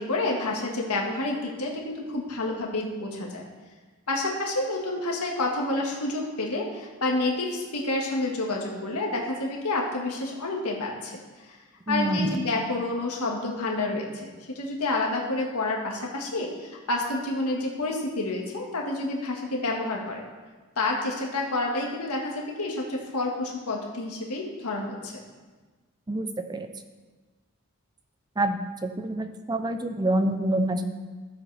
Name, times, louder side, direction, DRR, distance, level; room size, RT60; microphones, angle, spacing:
voice 1, 0.0-3.4 4.1-11.1 11.5-11.6 11.9-14.3 14.6-20.2 20.8-25.1, left 2 dB, 90° left, 0 dB, 1.7 m, -29 dB
voice 2, 11.9-12.5 26.1-26.7 28.4-30.8, right 1 dB, 20° right, 8 dB, 0.5 m, -27 dB
13.5 x 7.6 x 3.4 m, 1.3 s
head